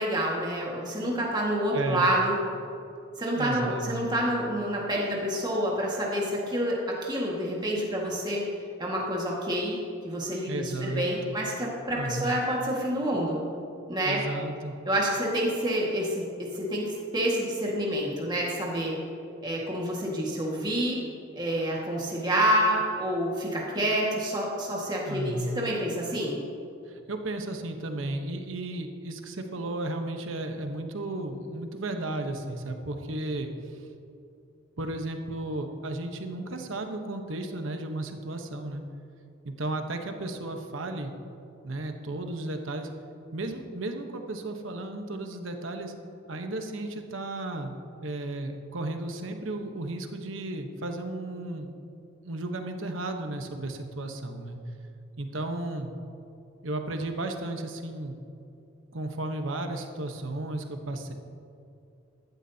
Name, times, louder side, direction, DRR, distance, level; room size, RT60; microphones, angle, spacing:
voice 1, 0.0-2.4 3.2-8.4 8.8-9.8 10.0-13.4 13.9-14.2 14.9-19.0 19.4-21.0 21.4-26.4, right 1 dB, 20° right, -4 dB, 1.7 m, -28 dB
voice 2, 1.7-2.1 3.4-4.0 10.5-11.4 12.0-12.4 14.0-14.7 25.1-25.7 26.9-33.9 34.8-38.8 39.4-41.1 41.6-42.9 43.3-45.9 46.3-51.7 52.2-54.6 55.2-55.9 56.6-58.2 58.9-61.1, right 2 dB, 80° right, 5 dB, 1.0 m, -34 dB
15.0 x 12.0 x 2.8 m, 2.6 s
head